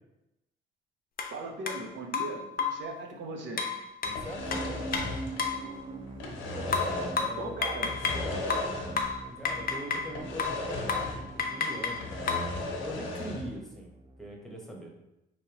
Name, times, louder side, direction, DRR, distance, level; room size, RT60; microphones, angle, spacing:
sound 1, 1.2-1.3 1.7-1.8 2.1-2.9 3.6-5.7 6.7-8.2 8.5-10.1 10.4-10.6 10.9-11.1 11.4-12.5, left 5 dB, 45° left, 0.6 m, -31 dB
voice 1, 1.3-3.6 7.4-7.9, right 2 dB, 65° right, 1 dB, 1.0 m, -38 dB
sound 2, 4.0-5.8 6.1-7.3 7.8-9.2 9.5-9.6 10.1-11.4 11.7-13.5, left 2 dB, 80° left, 0.8 m, -36 dB
voice 2, 4.0-5.0 6.4-8.6 9.3-12.3 12.8-13.9 14.2-14.9, equal, ahead, -1 dB, 1.1 m, -41 dB
sound 3, 4.4-14.3, right 2 dB, 25° right, 0.5 m, -43 dB
4.3 x 3.3 x 3.0 m, 0.90 s
cardioid pair, 90°, 20 cm